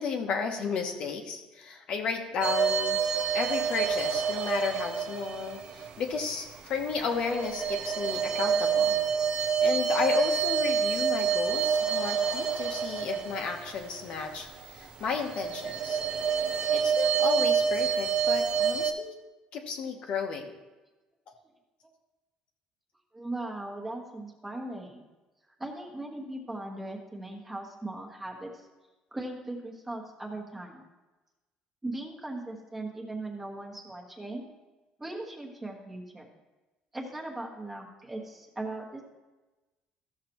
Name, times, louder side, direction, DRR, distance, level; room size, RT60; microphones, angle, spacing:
voice 1, 0.0-3.0 3.3-9.0 9.4-16.0 16.7-19.1 19.5-20.4, left 5 dB, 50° left, 2 dB, 1.0 m, -33 dB
sound 1, 2.4-6.3 6.8-14.7 15.1-18.9, right 7 dB, 40° right, 0.6 m, -28 dB
voice 2, 23.1-25.0 25.6-28.7 29.1-30.8 31.8-34.5 35.0-36.3 36.9-39.0, right 2 dB, 10° right, -1 dB, 1.2 m, -38 dB
14.0 x 6.5 x 3.0 m, 1.1 s
cardioid pair, 160°, 2 cm